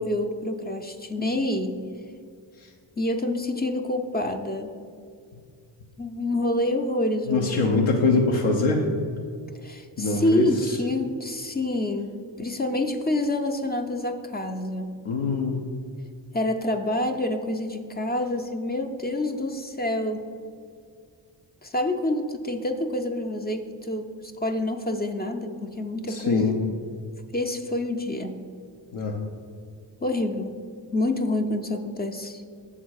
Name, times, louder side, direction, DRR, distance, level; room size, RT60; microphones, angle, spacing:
voice 1, 0.0-1.8 3.0-4.7 6.0-7.5 9.6-15.0 16.3-20.2 21.6-26.5 27.3-28.4 30.0-30.6 30.9-32.4, left 1 dB, 20° left, 6 dB, 0.4 m, -27 dB
voice 2, 7.3-8.9 10.0-10.7 15.0-15.6 26.1-26.6 28.9-29.2, left 3 dB, 85° left, 0 dB, 0.9 m, -23 dB
7.2 x 3.7 x 6.3 m, 2.2 s
cardioid pair, 90°, 49 cm